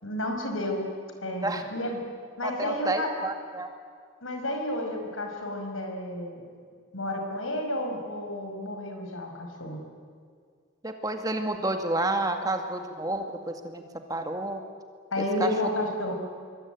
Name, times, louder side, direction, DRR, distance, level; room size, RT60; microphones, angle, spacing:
voice 1, 0.0-0.9 1.2-2.0 2.4-3.1 4.2-6.4 6.9-9.8 15.1-16.1, left 1 dB, 85° left, 3 dB, 5.8 m, -31 dB
voice 2, 2.4-3.7 10.8-13.8 14.1-14.6 15.2-15.5, right 2 dB, 20° right, 5 dB, 1.9 m, -30 dB
25.5 x 24.0 x 9.3 m, 2.1 s
head